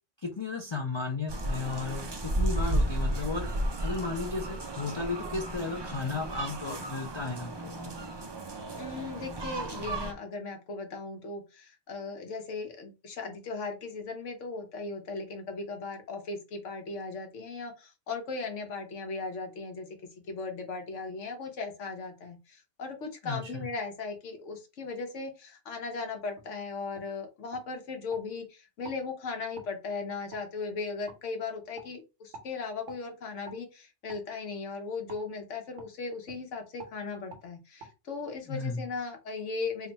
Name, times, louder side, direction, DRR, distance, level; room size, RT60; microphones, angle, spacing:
voice 1, 0.2-3.5 3.8-7.7 23.2-23.5 38.5-38.8, left 3 dB, 45° left, 2 dB, 0.3 m, -34 dB
sound 1, 1.3-10.1, right 1 dB, 40° right, 0.4 m, -33 dB
voice 2, 8.8-19.9 20.3-39.9, left 4 dB, 90° left, 4 dB, 1.3 m, -37 dB
sound 2, 26.4-26.5 26.9-27.1 27.5-28.2 28.8-29.0 29.6-29.7 30.3-30.4 31.1-31.2 31.7-31.9 32.3-32.5 32.9-33.0 33.4-33.6 34.1-34.3 35.1-35.2 35.8-35.9 36.2-36.4 36.8-37.0 37.3-37.4 37.8-37.9, right 3 dB, 85° right, 1.4 m, -48 dB
3.4 x 2.2 x 3.9 m, 0.28 s
omnidirectional pair, 1.2 m